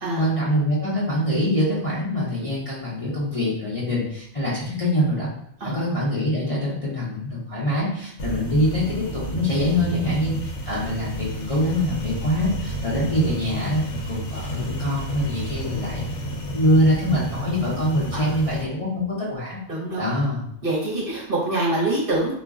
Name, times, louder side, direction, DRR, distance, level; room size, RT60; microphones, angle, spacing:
voice 1, 0.2-5.3 5.6-16.0 16.4-19.6 20.0-20.4, equal, 35° left, -8 dB, 0.6 m, -24 dB
sound 1, 8.2-18.6, equal, 70° left, 0.9 m, -31 dB
voice 2, 19.7-20.1 20.6-22.3, right 2 dB, 50° right, -5 dB, 0.9 m, -25 dB
2.4 x 2.1 x 3.5 m, 0.72 s
omnidirectional pair, 1.3 m